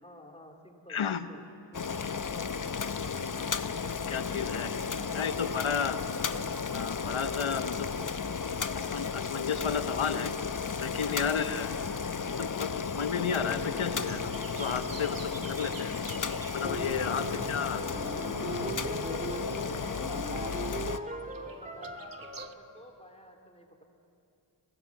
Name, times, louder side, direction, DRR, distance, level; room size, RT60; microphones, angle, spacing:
voice 1, 0.0-1.4 1.7-2.6 8.0-8.2 20.4-23.8, left 1 dB, 10° left, 3 dB, 2.8 m, -53 dB
voice 2, 0.9-1.3 4.1-4.8 5.1-6.0 6.7-7.9 8.7-10.3 10.8-11.7 12.4-14.3 14.6-15.2 15.6-15.9 16.5-17.8 18.4-18.6, left 7 dB, 75° left, 11 dB, 1.1 m, -32 dB
Boiling, 1.7-21.0, left 5 dB, 40° left, 0.8 m, -34 dB
sound 1, 13.4-15.4 16.6-22.5, right 2 dB, 15° right, 1.9 m, -40 dB
sound 2, 13.7-19.3 19.5-22.5, right 6 dB, 45° right, 0.8 m, -49 dB
26.0 x 16.0 x 7.3 m, 2.7 s
cardioid pair, 45°, 49 cm